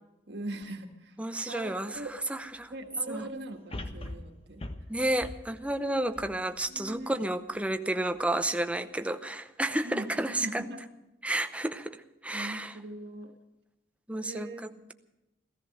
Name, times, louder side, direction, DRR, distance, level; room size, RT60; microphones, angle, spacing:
voice 1, 0.3-1.1 1.5-2.1 2.7-4.6 6.7-7.1 9.8-10.8 12.3-13.3 14.2-14.6, right 1 dB, 65° right, 5 dB, 1.7 m, -40 dB
voice 2, 1.2-2.8 3.1-3.3 4.9-10.5 11.2-12.7 14.1-14.9, right 1 dB, 5° right, 8 dB, 0.7 m, -31 dB
sound 1, 2.0-2.1 3.7-7.0 7.5-7.6, left 1 dB, 30° left, 1.2 m, -42 dB
15.5 x 14.0 x 6.6 m, 0.94 s
head